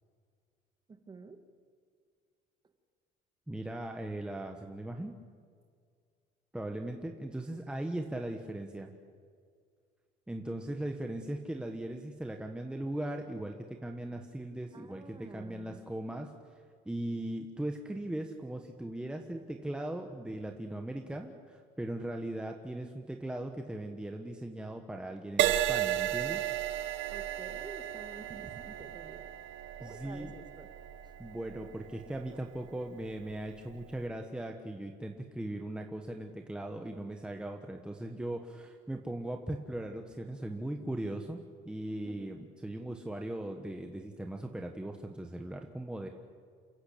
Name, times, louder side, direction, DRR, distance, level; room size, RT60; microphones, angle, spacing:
voice 1, 0.9-1.4 14.7-15.9 27.1-29.3 29.8-30.7 31.0-31.1 41.9-42.4, right 4 dB, 25° right, 7 dB, 1.9 m, -49 dB
voice 2, 3.5-5.1 6.5-8.9 10.3-16.3 16.8-26.4 29.8-30.3 31.2-46.1, right 1 dB, 5° right, 3 dB, 1.3 m, -39 dB
Crash cymbal, 25.4-33.0 33.7-34.0, right 12 dB, 80° right, 1.1 m, -34 dB
28.0 x 15.5 x 8.5 m, 2.1 s
cardioid pair, 145°, 19 cm